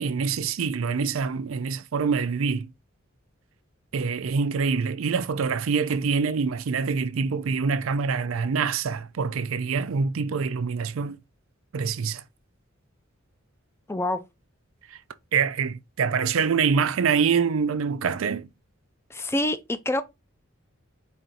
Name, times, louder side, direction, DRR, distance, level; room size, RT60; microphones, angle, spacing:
voice 1, 0.0-2.7 3.9-11.2 11.7-12.2 14.9-15.0 15.3-18.5, right 5 dB, 80° right, 0.4 m, -25 dB
voice 2, 13.9-14.2 19.1-20.0, left 1 dB, 10° left, 0.4 m, -26 dB
4.4 x 2.6 x 3.8 m
head